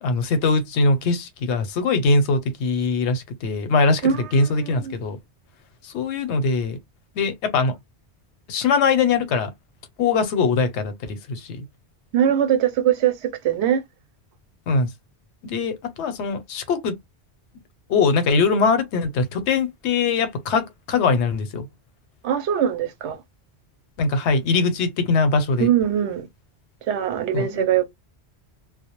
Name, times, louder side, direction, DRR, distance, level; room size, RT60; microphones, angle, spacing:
voice 1, 0.0-5.2 5.8-6.8 7.1-7.7 8.5-9.5 10.0-11.6 14.7-14.9 15.4-16.9 17.9-21.7 24.0-25.7 27.3-27.6, left 4 dB, 90° left, 0.9 m, -22 dB
voice 2, 4.0-4.9 12.1-13.8 22.2-23.2 25.6-26.3 26.9-27.8, right 9 dB, 85° right, 0.9 m, -22 dB
2.2 x 2.0 x 2.9 m
omnidirectional pair, 1.1 m